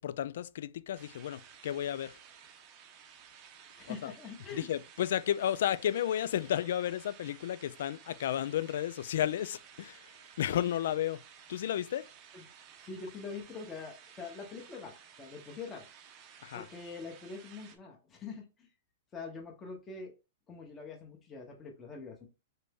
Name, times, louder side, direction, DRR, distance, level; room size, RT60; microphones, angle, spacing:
voice 1, 0.0-2.2 3.9-4.1 4.5-10.0 10.4-11.2 11.5-12.1 16.4-16.6, left 11 dB, 60° left, 0.3 m, -33 dB
sound 1, 0.9-17.8, right 8 dB, 25° right, 0.6 m, -55 dB
voice 2, 3.8-4.7 12.3-12.5 12.8-15.9 16.5-18.7 19.1-20.1 20.5-22.3, left 4 dB, 15° left, 0.8 m, -44 dB
3.9 x 3.4 x 3.4 m
supercardioid pair, 170°, 0 cm